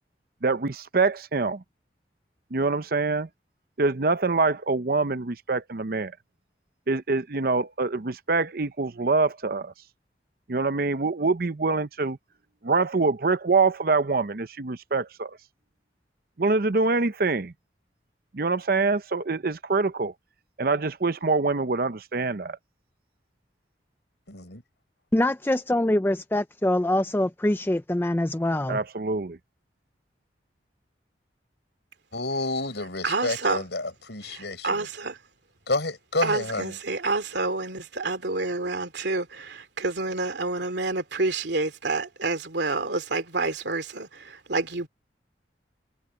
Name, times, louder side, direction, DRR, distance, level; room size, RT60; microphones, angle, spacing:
voice 1, 0.4-1.6 2.5-3.3 3.8-6.2 6.9-9.7 10.5-12.2 12.6-15.4 16.4-17.5 18.3-20.1 20.6-22.6 28.7-29.4, right 3 dB, 55° right, 0.7 m, -25 dB
voice 2, 24.3-24.6 32.1-34.9 35.7-36.8, left 2 dB, 75° left, 6.5 m, -30 dB
voice 3, 25.1-28.8, left 1 dB, 10° left, 0.4 m, -24 dB
voice 4, 33.0-33.6 34.3-35.2 36.2-44.9, right 3 dB, 75° right, 2.5 m, -28 dB
head